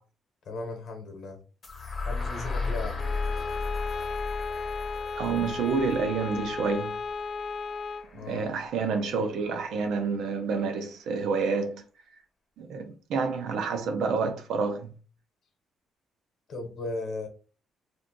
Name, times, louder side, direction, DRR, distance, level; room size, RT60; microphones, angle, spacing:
voice 1, 0.4-1.4 2.0-3.0 8.1-8.4 16.5-17.3, left 2 dB, 65° left, 0.8 m, -36 dB
sound 1, 1.6-9.6, left 4 dB, 25° left, 0.9 m, -36 dB
Bowed string instrument, 3.0-8.1, left 4 dB, 45° left, 0.4 m, -35 dB
voice 2, 5.2-6.9 8.1-11.8 12.6-14.9, right 5 dB, 80° right, 0.6 m, -28 dB
2.5 x 2.3 x 3.8 m
cardioid pair, 90°, 0 cm